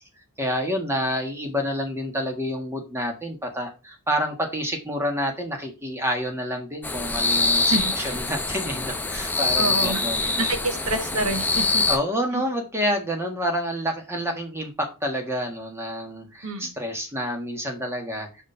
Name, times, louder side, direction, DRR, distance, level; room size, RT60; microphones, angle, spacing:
voice 1, 0.4-10.5 11.9-18.3, equal, 10° right, 3 dB, 1.5 m, -28 dB
sound 1, 6.8-12.0, left 3 dB, 10° left, 0.7 m, -24 dB
voice 2, 7.5-8.2 9.6-11.9 12.3-12.4 16.4-16.7, right 2 dB, 70° right, 7 dB, 1.4 m, -28 dB
5.3 x 5.0 x 5.4 m, 0.29 s
head